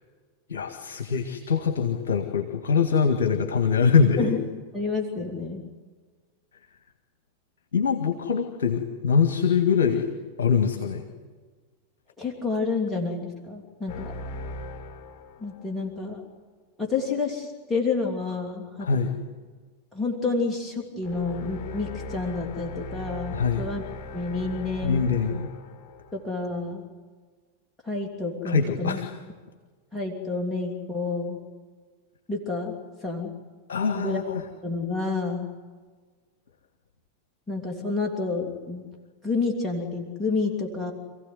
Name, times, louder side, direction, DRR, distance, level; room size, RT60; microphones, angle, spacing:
voice 1, 0.5-4.3 7.7-10.1 10.4-11.0 18.8-19.1 23.3-23.7 24.8-25.5 28.4-29.1 33.7-34.4, left 6 dB, 60° left, 5 dB, 1.8 m, -23 dB
voice 2, 4.7-5.6 12.2-14.1 15.4-16.2 16.8-18.9 19.9-23.8 24.1-25.1 26.1-26.9 27.8-29.0 29.9-31.4 32.3-32.7 33.0-33.3 33.9-34.2 34.6-35.5 37.5-38.9 39.2-40.9, left 4 dB, 10° left, 0 dB, 3.2 m, -29 dB
sound 1, 13.9-15.9 21.0-26.6, left 2 dB, 30° left, 5.3 m, -39 dB
27.5 x 16.0 x 9.6 m, 1.5 s
figure-of-eight pair, 90°, 0 cm